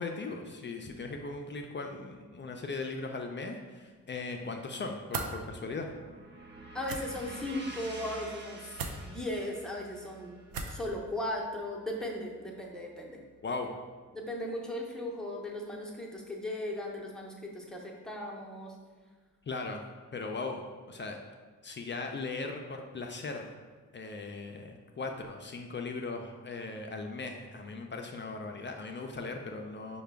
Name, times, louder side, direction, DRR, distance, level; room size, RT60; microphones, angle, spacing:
voice 1, 0.0-5.9 13.4-13.7 19.5-19.8 20.1-21.2 21.6-23.5 23.9-30.0, left 3 dB, 35° left, 3 dB, 0.4 m, -38 dB
sound 1, 5.1-13.1, right 2 dB, 30° right, 0.6 m, -49 dB
sound 2, 5.1-5.3 6.8-7.0 8.7-9.0 10.5-10.8, right 4 dB, 75° right, 0.5 m, -36 dB
voice 2, 6.7-10.4 10.7-13.2 14.1-18.7, left 1 dB, ahead, -2 dB, 0.7 m, -37 dB
4.7 x 2.2 x 3.3 m, 1.4 s
cardioid pair, 65°, 35 cm